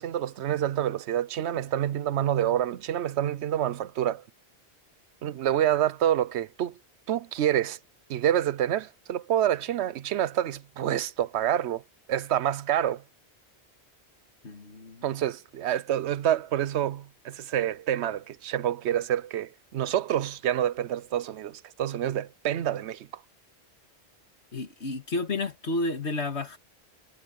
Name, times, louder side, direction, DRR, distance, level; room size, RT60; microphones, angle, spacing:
voice 1, 0.0-4.2 5.2-6.8 7.1-7.8 8.1-11.8 12.1-13.0 15.0-23.1, right 11 dB, 85° right, 0.9 m, -27 dB
voice 2, 14.4-15.1 24.5-26.6, left 2 dB, 80° left, 2.5 m, -31 dB
omnidirectional pair, 1.1 m